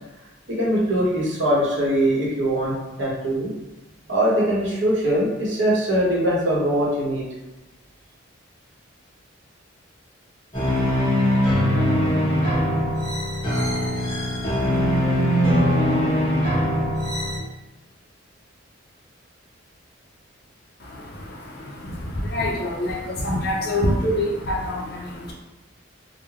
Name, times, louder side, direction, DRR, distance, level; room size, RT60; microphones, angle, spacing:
voice 1, 0.5-3.5 4.1-7.3, right 1 dB, 60° right, -5 dB, 0.8 m, -22 dB
sound 1, 10.5-17.4, equal, 20° left, 0.9 m, -21 dB
voice 2, 20.8-25.3, left 1 dB, 50° left, -2 dB, 0.4 m, -26 dB
3.1 x 2.0 x 2.3 m, 1.0 s
head